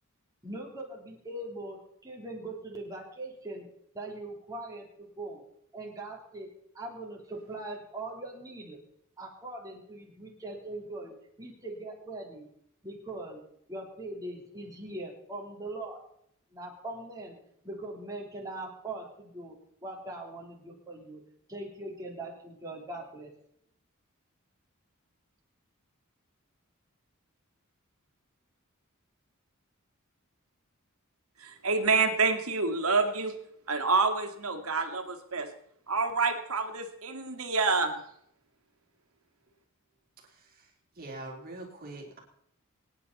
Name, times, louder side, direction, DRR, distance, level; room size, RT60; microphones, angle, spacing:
voice 1, 0.4-3.7 3.9-5.4 5.7-6.5 6.7-8.8 9.2-12.5 12.8-13.4 13.7-16.0 16.5-17.4 17.6-19.6 19.8-21.2 21.5-23.3, right 2 dB, 15° right, -2 dB, 3.7 m, -41 dB
voice 2, 31.4-33.3 33.7-35.5 35.9-37.9, right 4 dB, 90° right, 6 dB, 2.2 m, -27 dB
voice 3, 40.2-40.7 41.0-42.2, right 2 dB, 45° right, 1 dB, 3.5 m, -44 dB
24.5 x 9.9 x 4.2 m, 0.71 s
head